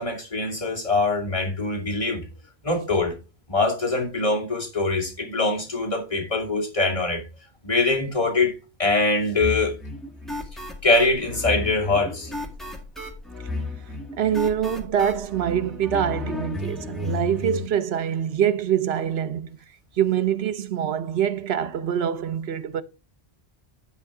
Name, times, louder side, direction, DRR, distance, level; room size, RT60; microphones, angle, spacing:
voice 1, 0.0-2.2 2.6-3.2 3.5-7.2 7.6-9.8 10.8-12.3, left 3 dB, 30° left, 2.7 m, -23 dB
sound 1, 9.4-17.7, left 2 dB, ahead, 1.7 m, -33 dB
voice 2, 14.2-19.6 20.0-22.8, right 9 dB, 70° right, 0.9 m, -24 dB
10.5 x 4.4 x 4.7 m
omnidirectional pair, 1.1 m